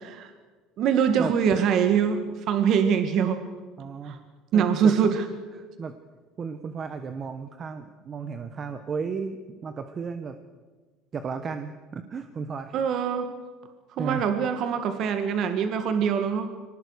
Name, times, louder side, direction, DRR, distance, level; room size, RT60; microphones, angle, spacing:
voice 1, 0.8-3.4 4.0-4.2 4.5-5.2 12.7-13.3 14.0-16.5, right 7 dB, 55° right, 7 dB, 2.0 m, -23 dB
voice 2, 3.8-4.2 4.5-5.1 5.5-5.9 6.4-10.4 11.1-12.8 14.0-14.3, right 5 dB, 30° right, 8 dB, 1.3 m, -34 dB
24.5 x 19.0 x 6.6 m, 1.4 s
cardioid pair, 130°, 0 cm